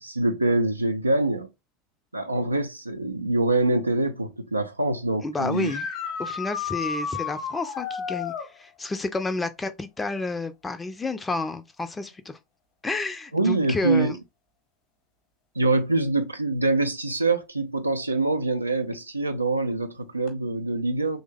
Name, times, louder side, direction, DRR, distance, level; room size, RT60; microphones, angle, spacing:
voice 1, 0.0-1.5 2.1-5.7 13.3-14.1 15.6-21.2, right 2 dB, 85° right, 0.4 m, -24 dB
voice 2, 5.2-5.9 6.2-12.4 12.8-14.2, left 3 dB, 15° left, 0.5 m, -30 dB
sound 1, 5.5-8.5 11.8-11.9 13.9-14.0 20.3-20.4, left 7 dB, 50° left, 1.0 m, -32 dB
3.2 x 2.1 x 3.4 m
figure-of-eight pair, 75°, 0 cm